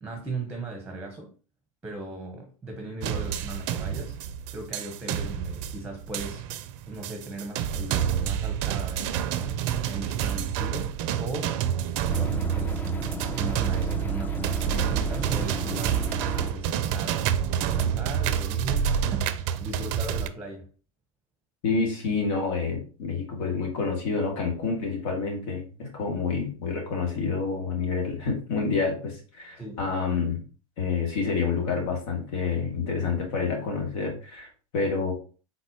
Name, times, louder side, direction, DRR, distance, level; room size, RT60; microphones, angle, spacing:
voice 1, 0.0-1.3 1.8-4.1 4.5-6.4 6.9-11.6 12.0-13.1 13.3-16.1 16.5-20.7 29.6-29.8, right 2 dB, 10° right, 1.0 m, -38 dB
sound 1, 3.0-20.3, right 9 dB, 55° right, 0.5 m, -28 dB
sound 2, 12.1-16.5, left 2 dB, 10° left, 0.6 m, -36 dB
voice 2, 21.6-30.4 30.8-35.1, left 4 dB, 65° left, 2.0 m, -28 dB
4.1 x 4.1 x 2.8 m
hypercardioid pair, 105°, 18 cm